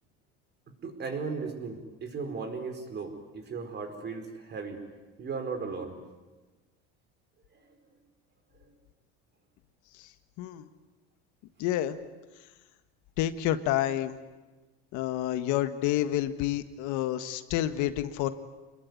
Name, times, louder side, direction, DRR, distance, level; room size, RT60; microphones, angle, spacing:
voice 1, 0.8-4.8 5.2-6.0 7.5-7.7 8.6-8.7, right 4 dB, 35° right, 5 dB, 4.7 m, -36 dB
voice 2, 10.4-10.7 11.6-12.0 13.2-14.2 14.9-18.3, left 13 dB, 65° left, 10 dB, 1.6 m, -29 dB
27.0 x 21.0 x 9.6 m, 1.2 s
cardioid pair, 130°, 32 cm